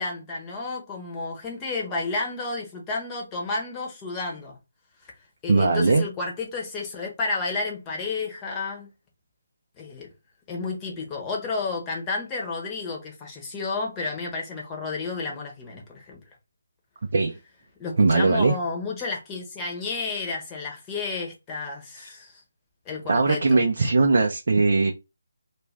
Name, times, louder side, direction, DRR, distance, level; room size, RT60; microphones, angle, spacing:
voice 1, 0.0-4.6 5.4-8.9 9.8-10.1 10.5-16.2 17.8-22.4 22.9-23.7, left 3 dB, 15° left, 0.9 m, -31 dB
voice 2, 5.5-6.0 17.1-17.4 18.0-18.5 23.1-24.9, right 3 dB, 60° right, 0.5 m, -20 dB
2.4 x 2.2 x 3.2 m
figure-of-eight pair, 155°, 0 cm